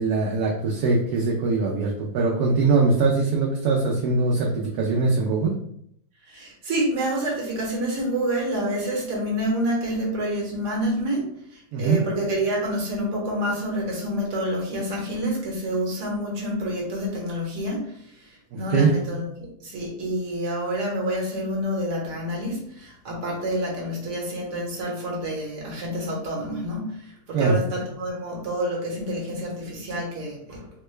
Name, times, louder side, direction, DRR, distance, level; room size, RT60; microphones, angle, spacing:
voice 1, 0.0-5.5 11.7-12.0 18.5-18.9 27.3-27.6, right 3 dB, 70° right, -2 dB, 1.0 m, -22 dB
voice 2, 6.3-30.7, equal, 50° right, -2 dB, 1.4 m, -28 dB
3.7 x 2.2 x 3.2 m, 0.68 s
omnidirectional pair, 1.7 m